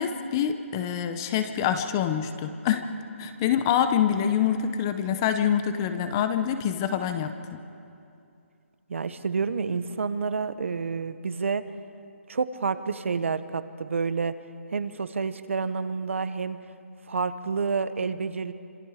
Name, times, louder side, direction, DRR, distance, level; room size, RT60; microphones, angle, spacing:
voice 1, 0.0-7.6, left 9 dB, 15° left, 9 dB, 0.6 m, -26 dB
voice 2, 8.9-11.6 12.3-14.3 14.7-16.6 17.1-18.5, right 5 dB, 65° right, 12 dB, 1.1 m, -29 dB
26.5 x 26.5 x 5.0 m, 2.6 s
hypercardioid pair, 175°, 7 cm